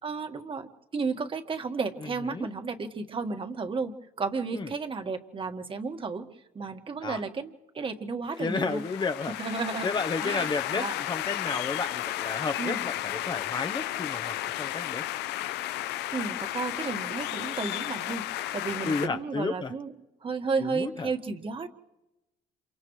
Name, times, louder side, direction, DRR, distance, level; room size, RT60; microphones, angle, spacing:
voice 1, 0.0-6.3 6.5-8.8 9.4-9.9 10.2-10.9 12.6-12.8 16.1-18.2 18.5-19.9 20.2-21.7, right 4 dB, 30° right, 1.7 m, -33 dB
voice 2, 2.0-2.5 4.5-4.7 7.0-7.2 8.4-9.3 9.8-15.0 18.8-19.7 20.6-21.1, left 4 dB, 25° left, 1.0 m, -32 dB
sound 1, 8.4-19.1, left 14 dB, 85° left, 0.7 m, -33 dB
30.0 x 27.5 x 3.2 m
cardioid pair, 110°, 17 cm